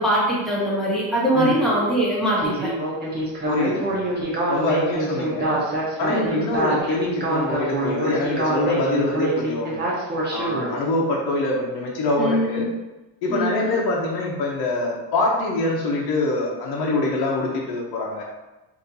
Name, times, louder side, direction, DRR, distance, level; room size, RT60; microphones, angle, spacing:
voice 1, 0.0-2.7 6.1-6.5 12.2-12.7 13.3-13.7, right 1 dB, ahead, -8 dB, 1.3 m, -22 dB
voice 2, 1.3-1.7 3.5-4.0 4.5-5.6 6.0-9.8 10.3-12.7 13.2-18.2, left 2 dB, 65° left, -2 dB, 1.1 m, -24 dB
Speech synthesizer, 2.4-10.7, right 1 dB, 25° right, 1.0 m, -25 dB
4.2 x 2.9 x 4.0 m, 1.1 s
cardioid pair, 165°, 41 cm